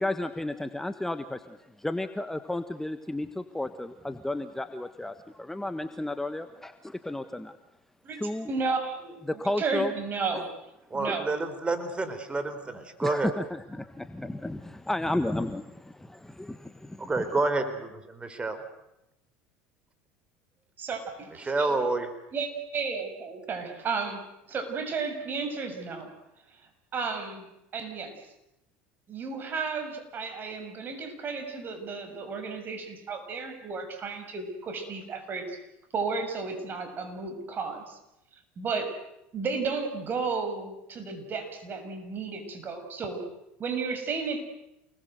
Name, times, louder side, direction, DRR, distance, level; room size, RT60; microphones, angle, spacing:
voice 1, 0.0-7.5 8.1-8.5 9.2-9.9 10.3-10.4 11.0-11.2 13.0-17.2, left 1 dB, 5° left, 9 dB, 1.3 m, -33 dB
voice 2, 8.5-10.5 10.9-11.3 20.8-21.9 22.3-24.2 24.5-26.1 26.9-27.5 27.7-28.2 29.1-35.6 35.9-38.0 38.6-38.9 39.3-43.2 43.6-44.4, right 4 dB, 40° right, 6 dB, 6.9 m, -33 dB
voice 3, 10.9-13.3 17.0-18.6 21.4-22.1, right 3 dB, 20° right, 9 dB, 4.3 m, -29 dB
28.5 x 20.5 x 8.0 m, 0.86 s
supercardioid pair, 90°, 5 cm